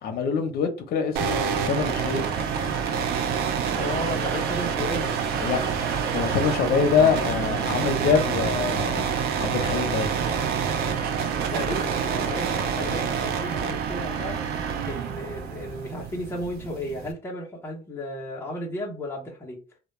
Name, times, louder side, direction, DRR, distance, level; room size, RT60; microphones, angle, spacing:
voice 1, 0.0-2.3 5.4-5.6 6.1-9.0 9.4-10.1, left 6 dB, 65° left, 0.7 m, -24 dB
sound 1, 1.2-17.1, right 7 dB, 75° right, 0.5 m, -27 dB
voice 2, 3.7-5.1 11.5-14.4 14.8-19.6, left 1 dB, 15° left, 0.7 m, -34 dB
2.2 x 2.1 x 3.0 m
cardioid pair, 110°, 17 cm